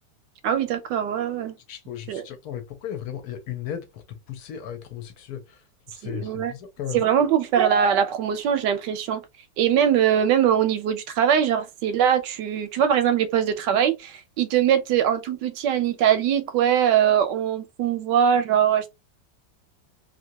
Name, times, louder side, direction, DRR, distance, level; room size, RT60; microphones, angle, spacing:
voice 1, 0.4-1.6 2.1-2.2 6.0-6.5 6.9-9.2 9.6-18.9, right 9 dB, 75° right, 1.1 m, -22 dB
voice 2, 1.7-5.6 5.9-7.0, left 9 dB, 65° left, 1.1 m, -35 dB
2.9 x 2.7 x 2.7 m
omnidirectional pair, 2.1 m